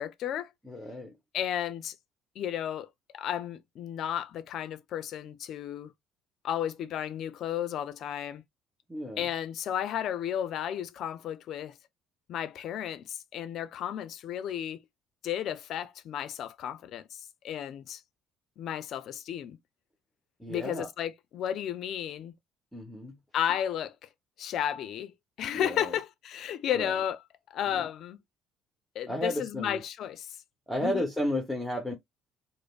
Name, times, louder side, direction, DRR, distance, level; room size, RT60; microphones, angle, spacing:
voice 1, 0.0-0.5 1.3-1.9 2.4-2.9 3.1-5.9 6.4-8.4 9.2-11.8 12.3-14.8 15.2-18.0 18.6-19.6 20.5-22.3 23.3-24.1 24.4-27.2 27.5-28.2 28.9-30.4 30.8-31.1, left 10 dB, 65° left, 0.4 m, -33 dB
voice 2, 0.6-1.2 8.9-9.3 20.4-20.9 22.7-23.2 25.5-26.0 26.7-26.9 27.7-27.9 29.1-29.8 30.7-31.9, left 1 dB, 5° left, 0.8 m, -33 dB
5.0 x 2.0 x 2.3 m
cardioid pair, 95°, 0 cm